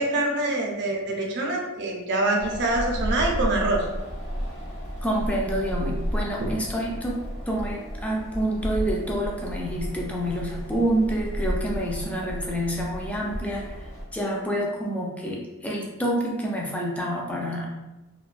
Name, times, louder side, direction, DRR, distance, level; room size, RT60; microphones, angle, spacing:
voice 1, 0.0-3.8, right 2 dB, 55° right, 0 dB, 0.5 m, -25 dB
Wind, 2.4-14.0, equal, 65° left, 0.9 m, -32 dB
voice 2, 5.0-17.7, right 1 dB, 5° left, -2 dB, 0.3 m, -28 dB
2.5 x 2.2 x 2.4 m, 1.0 s
head